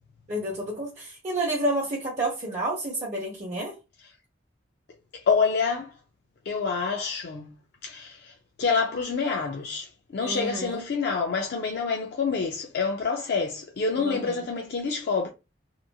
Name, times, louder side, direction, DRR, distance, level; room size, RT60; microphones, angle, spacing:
voice 1, 0.3-3.8 10.2-10.8 14.0-14.5, right 1 dB, 40° right, 0.8 m, -30 dB
voice 2, 5.1-5.9 6.5-7.5 7.8-15.3, left 5 dB, 60° left, 0.4 m, -27 dB
2.9 x 2.4 x 2.2 m
head